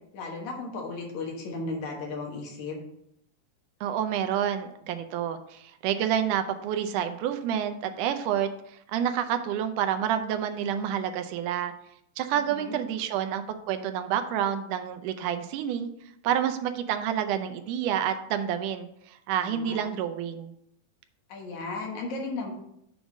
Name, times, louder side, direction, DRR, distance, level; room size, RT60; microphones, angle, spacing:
voice 1, 0.1-2.8 12.4-12.8 19.3-19.9 21.3-22.5, left 3 dB, 65° left, 1 dB, 2.6 m, -35 dB
voice 2, 3.8-11.7 12.2-15.9 16.2-20.5, right 9 dB, 80° right, 8 dB, 2.0 m, -29 dB
7.1 x 3.8 x 6.1 m, 0.74 s
omnidirectional pair, 3.8 m